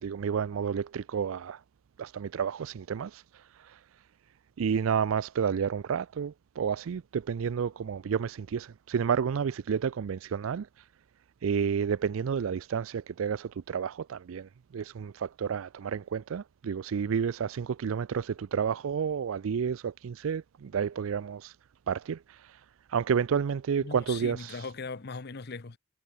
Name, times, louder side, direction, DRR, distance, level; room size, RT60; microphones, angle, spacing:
voice 1, 0.0-1.6 2.0-3.8 4.6-10.9 11.4-21.6 21.9-24.7, right 7 dB, 80° right, 0.4 m, -31 dB
voice 2, 23.8-25.8, left 4 dB, 50° left, 0.9 m, -39 dB
head